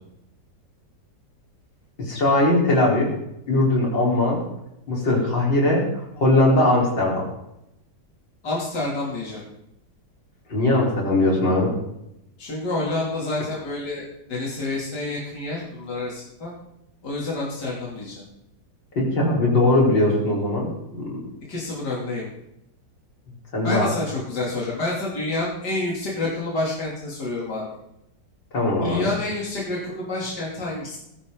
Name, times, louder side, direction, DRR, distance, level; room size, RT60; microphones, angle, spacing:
voice 1, 2.0-3.1 3.5-4.4 4.9-5.8 6.2-7.3 10.5-11.8 19.0-21.2 23.5-24.0 28.5-29.1, left 2 dB, 85° left, -3 dB, 5.4 m, -20 dB
voice 2, 8.4-9.4 12.4-16.5 17.0-18.2 21.5-22.3 23.6-27.7 28.8-31.0, left 2 dB, 65° left, -5 dB, 3.9 m, -28 dB
20.0 x 15.0 x 4.0 m, 0.82 s
omnidirectional pair, 1.9 m